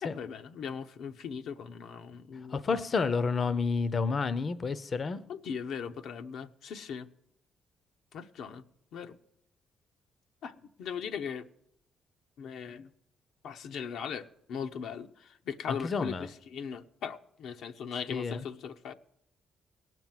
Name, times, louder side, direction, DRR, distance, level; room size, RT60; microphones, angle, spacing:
voice 1, 0.0-2.6 5.3-7.1 8.1-8.6 8.9-9.2 10.4-11.5 12.4-12.9 13.4-18.9, left 7 dB, 75° left, 0.7 m, -39 dB
voice 2, 2.5-5.2 15.7-16.3 18.1-18.4, left 4 dB, 45° left, 0.6 m, -30 dB
17.5 x 6.0 x 9.1 m
cardioid pair, 90°, 0 cm